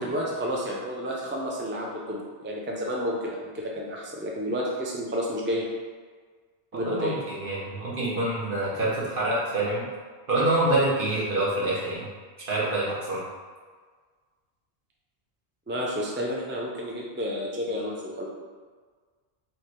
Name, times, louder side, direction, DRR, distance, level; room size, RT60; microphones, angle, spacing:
voice 1, 0.0-5.7 6.7-7.2 15.7-18.3, equal, 15° right, -3 dB, 0.4 m, -30 dB
voice 2, 6.7-9.8 10.3-12.1 12.5-13.2, right 2 dB, 55° right, -6 dB, 1.3 m, -26 dB
3.3 x 2.9 x 4.4 m, 1.5 s
omnidirectional pair, 1.1 m